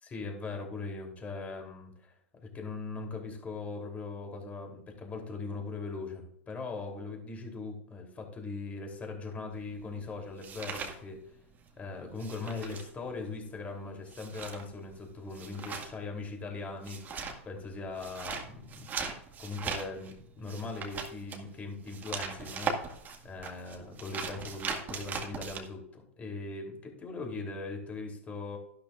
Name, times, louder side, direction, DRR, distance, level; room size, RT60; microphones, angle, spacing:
voice 1, 0.0-2.1 2.4-11.2 11.8-18.9 19.4-23.0 23.2-28.6, left 3 dB, 20° left, 2 dB, 3.3 m, -40 dB
sound 1, 9.5-11.7 11.9-25.6, right 5 dB, 25° right, 1.9 m, -39 dB
13.0 x 12.0 x 2.5 m, 0.70 s
hypercardioid pair, 100°, 7 cm